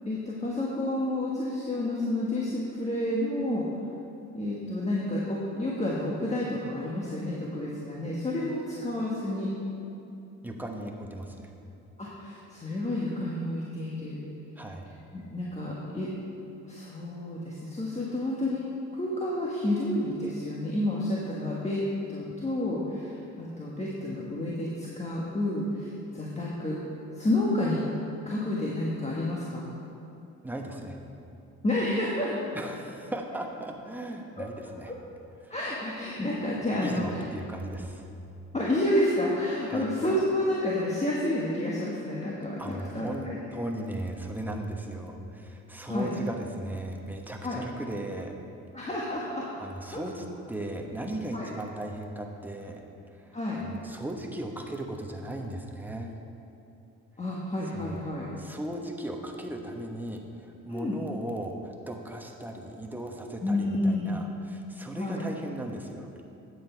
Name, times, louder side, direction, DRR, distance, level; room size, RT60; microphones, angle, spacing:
voice 1, 0.1-3.7 4.3-9.5 12.0-14.2 15.1-16.1 16.7-18.6 18.9-21.8 22.1-26.8 27.1-27.8 28.2-29.7 31.6-32.3 34.4-34.5 35.5-37.0 38.5-43.4 45.9-46.1 47.4-47.6 48.7-49.4 49.9-50.0 51.3-51.5 53.3-53.6 57.2-58.3 60.7-61.0 63.4-64.1 65.0-65.2, left 1 dB, 20° left, -5 dB, 1.3 m, -30 dB
voice 2, 10.4-11.5 14.6-14.9 30.4-31.0 32.5-34.9 35.4-35.5 36.8-38.1 39.7-39.8 42.6-48.3 49.6-52.8 53.2-56.1 57.7-58.0 58.4-66.1, right 1 dB, 5° right, 1 dB, 1.1 m, -37 dB
9.0 x 8.0 x 4.5 m, 2.8 s
cardioid pair, 90°, 30 cm